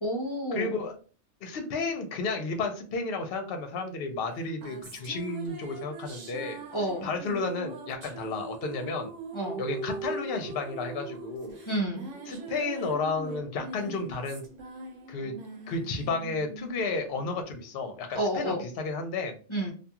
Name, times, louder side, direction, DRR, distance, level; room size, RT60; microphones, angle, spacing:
voice 1, 0.0-0.7 6.7-7.1 9.3-9.6 11.7-12.1 18.1-18.6 19.5-19.7, right 1 dB, 40° left, -3 dB, 0.4 m, -30 dB
voice 2, 0.5-0.9 1.4-9.1 9.6-11.6 12.3-14.4 15.1-15.3 15.7-19.4, left 3 dB, 60° left, 5 dB, 0.7 m, -32 dB
sound 1, 4.3-18.0, right 3 dB, 75° right, 1.1 m, -41 dB
2.4 x 2.3 x 2.8 m, 0.38 s
omnidirectional pair, 1.3 m